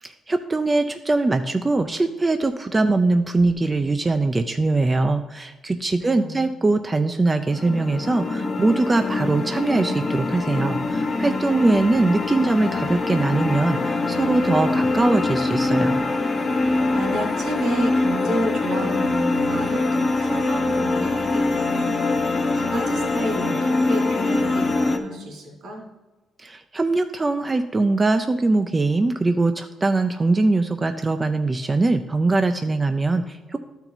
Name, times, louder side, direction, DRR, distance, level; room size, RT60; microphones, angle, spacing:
voice 1, 0.0-16.0 26.4-33.6, right 3 dB, 25° right, 7 dB, 0.4 m, -22 dB
voice 2, 6.0-6.5 16.5-25.8, right 1 dB, 75° right, 0 dB, 2.7 m, -31 dB
sound 1, 7.5-25.0, left 3 dB, 35° left, 0.8 m, -23 dB
12.0 x 4.5 x 3.9 m, 1.2 s
cardioid pair, 90°, 0 cm